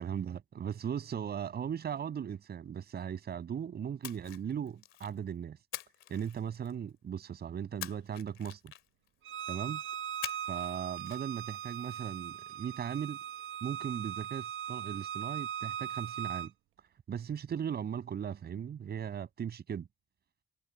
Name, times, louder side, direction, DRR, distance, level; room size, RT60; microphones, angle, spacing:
voice 1, 0.0-5.6 6.1-8.7 9.5-9.8 10.5-13.2 13.6-16.5 17.1-19.9, right 8 dB, 50° right, 6.2 m, -38 dB
Splash splatter, 4.0-5.2 5.7-6.9 7.8-9.1 10.2-10.7 11.0-11.2, left 13 dB, 85° left, 2.2 m, -44 dB
Bowed string instrument, 9.3-16.5, right 9 dB, 85° right, 1.1 m, -39 dB
cardioid pair, 120°, 20 cm